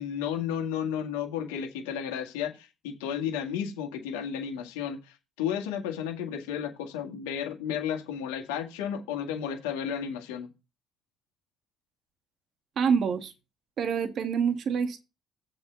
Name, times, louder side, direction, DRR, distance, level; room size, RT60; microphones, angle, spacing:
voice 1, 0.0-10.5, left 8 dB, 85° left, 1.9 m, -33 dB
voice 2, 12.8-13.3 13.8-15.0, right 6 dB, 60° right, 1.6 m, -26 dB
7.5 x 5.0 x 6.8 m
hypercardioid pair, 60°, 0 cm